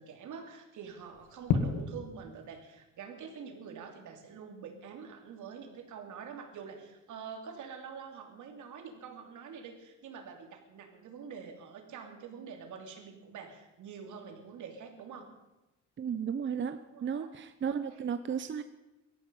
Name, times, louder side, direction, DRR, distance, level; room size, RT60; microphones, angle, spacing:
voice 1, 0.0-15.3 16.9-17.3 17.6-17.8, right 6 dB, 75° right, 4 dB, 3.1 m, -46 dB
sound 1, 0.9-18.0, left 5 dB, 85° left, 2.0 m, -43 dB
voice 2, 16.0-18.6, right 7 dB, 40° right, 10 dB, 0.8 m, -34 dB
18.0 x 13.5 x 5.5 m, 1.0 s
cardioid pair, 90°, 30 cm